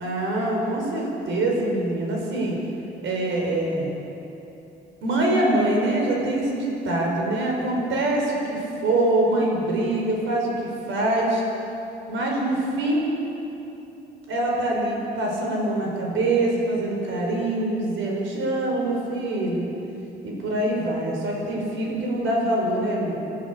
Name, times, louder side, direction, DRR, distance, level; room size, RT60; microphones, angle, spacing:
voice 1, 0.0-2.5 3.0-3.9 5.0-10.5 10.9-11.4 12.1-13.1 14.3-19.7 20.2-23.2, right 1 dB, 80° right, -1 dB, 6.1 m, -24 dB
29.0 x 14.0 x 6.8 m, 3.0 s
cardioid pair, 90°, 20 cm